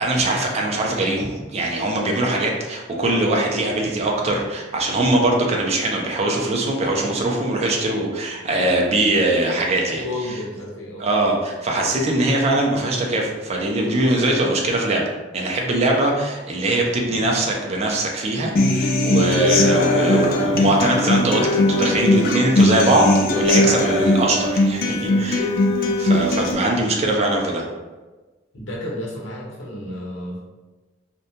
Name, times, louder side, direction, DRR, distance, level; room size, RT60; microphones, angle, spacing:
voice 1, 0.0-10.0 11.0-15.0 15.3-25.5 25.8-27.6, right 1 dB, 35° right, 0 dB, 0.4 m, -21 dB
voice 2, 9.9-11.1 24.8-25.2 28.5-30.4, left 1 dB, 80° left, -4 dB, 0.7 m, -32 dB
Human voice / Acoustic guitar, 18.6-26.5, left 1 dB, 50° left, 0.3 m, -19 dB
2.7 x 2.1 x 2.7 m, 1.2 s
head